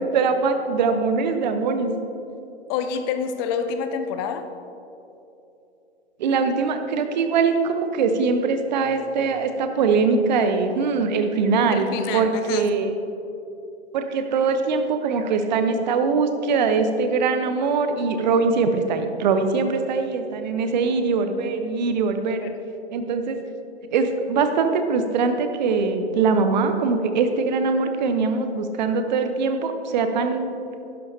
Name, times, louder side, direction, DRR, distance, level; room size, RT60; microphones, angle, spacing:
voice 1, 0.0-1.9 6.2-13.0 13.9-22.4 22.9-23.4 23.9-30.5, right 4 dB, 40° right, 7 dB, 1.0 m, -22 dB
voice 2, 2.7-4.5 11.7-12.7 22.4-22.6, left 6 dB, 20° left, 8 dB, 0.6 m, -27 dB
11.5 x 11.5 x 2.8 m, 2.8 s
figure-of-eight pair, 110°, 33 cm